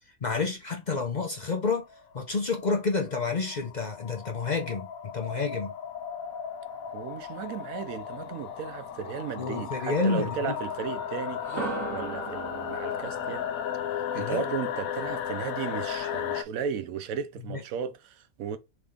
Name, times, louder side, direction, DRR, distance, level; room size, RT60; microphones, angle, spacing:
voice 1, 0.2-1.8 2.1-5.7 9.4-10.5 14.1-14.4 17.5-17.6, left 4 dB, 45° left, 0.6 m, -29 dB
sound 1, 1.4-16.4, left 9 dB, 85° left, 1.0 m, -35 dB
voice 2, 6.9-11.4 11.9-13.5 14.1-18.6, right 7 dB, 85° right, 1.1 m, -35 dB
sound 2, 11.4-15.3, right 3 dB, 70° right, 1.3 m, -38 dB
3.5 x 3.4 x 3.6 m
omnidirectional pair, 1.4 m